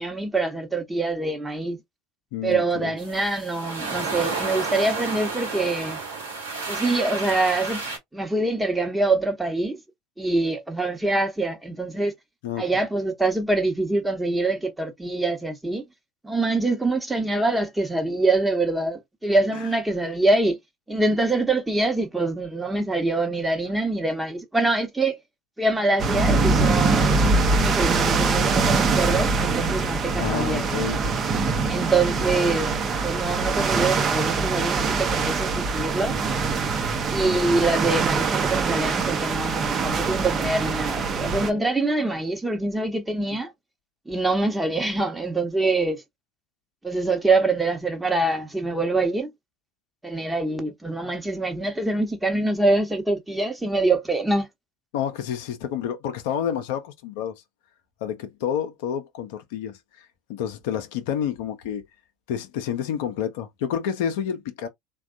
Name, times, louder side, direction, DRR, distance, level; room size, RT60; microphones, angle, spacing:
voice 1, 0.0-1.8 2.4-6.0 6.7-7.8 8.1-9.8 10.2-12.1 12.6-15.8 16.2-20.6 20.9-25.2 25.6-30.7 31.7-32.7 33.0-36.2 37.1-43.5 44.1-46.0 46.8-49.3 50.0-54.5, right 2 dB, 10° right, 1.0 m, -24 dB
voice 2, 2.3-2.9 12.4-12.6 30.2-31.0 54.9-57.4 58.0-61.8 62.3-64.7, left 9 dB, 70° left, 0.6 m, -29 dB
sound 1, 3.0-8.0, right 4 dB, 90° right, 1.1 m, -31 dB
sound 2, 26.0-41.5, right 4 dB, 40° right, 0.7 m, -23 dB
3.4 x 2.3 x 2.4 m
hypercardioid pair, 70°, 0 cm